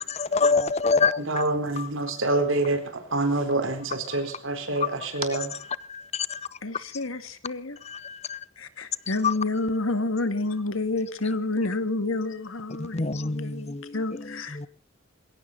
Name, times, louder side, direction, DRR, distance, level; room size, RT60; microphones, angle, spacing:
voice 1, 0.0-1.2 1.8-1.9 5.9-6.5 7.8-8.4 9.2-9.3 12.8-14.7, left 4 dB, 35° left, 0.7 m, -26 dB
voice 2, 1.2-5.5, right 2 dB, 75° right, 4.1 m, -26 dB
voice 3, 6.6-7.8 8.6-14.7, left 2 dB, 90° left, 2.0 m, -29 dB
21.0 x 17.0 x 3.9 m
head